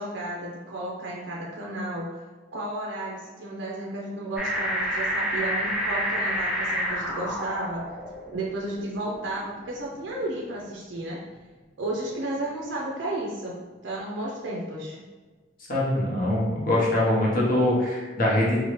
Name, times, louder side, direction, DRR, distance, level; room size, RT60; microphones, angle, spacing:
voice 1, 0.0-2.1 2.5-7.9 8.3-11.2 11.8-15.0, right 1 dB, 70° right, -4 dB, 0.4 m, -33 dB
sound 1, 4.4-10.5 11.0-11.1, equal, 5° right, 0.4 m, -29 dB
voice 2, 15.7-18.6, left 1 dB, 50° left, -5 dB, 0.8 m, -23 dB
2.9 x 2.0 x 3.0 m, 1.4 s
head